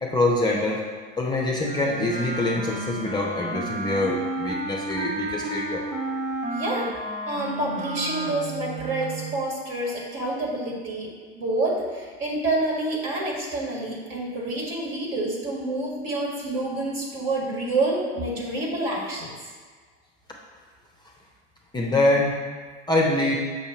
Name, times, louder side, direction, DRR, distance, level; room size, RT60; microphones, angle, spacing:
voice 1, 0.0-0.8 1.2-5.8 21.7-22.4 22.9-23.3, left 2 dB, 10° left, -2 dB, 0.6 m, -24 dB
Wind instrument woodwind instrument, 1.6-9.5, right 2 dB, 25° right, 1.0 m, -32 dB
voice 2, 6.5-6.9 7.3-11.1 11.3-19.3, right 2 dB, 45° right, -3 dB, 1.9 m, -28 dB
6.5 x 2.9 x 5.7 m, 1.5 s
figure-of-eight pair, 80°, 35 cm